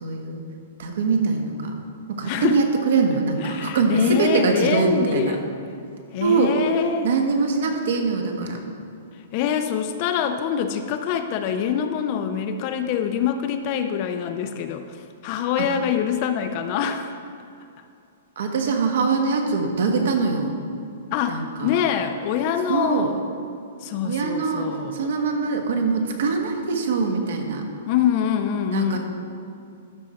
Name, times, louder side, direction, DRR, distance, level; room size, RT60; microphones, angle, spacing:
voice 1, 0.0-0.4 0.8-1.8 2.1-5.4 6.2-6.5 7.0-8.6 18.4-20.6 21.3-21.8 22.7-23.1 24.0-27.6 28.7-29.0, right 4 dB, 60° right, 4 dB, 1.2 m, -23 dB
voice 2, 2.2-2.6 3.4-5.4 6.1-7.1 9.3-15.0 15.2-17.2 21.1-23.1 23.8-25.1 27.9-29.0, left 8 dB, 30° left, 8 dB, 0.4 m, -25 dB
12.5 x 5.1 x 4.3 m, 2.6 s
hypercardioid pair, 170°, 0 cm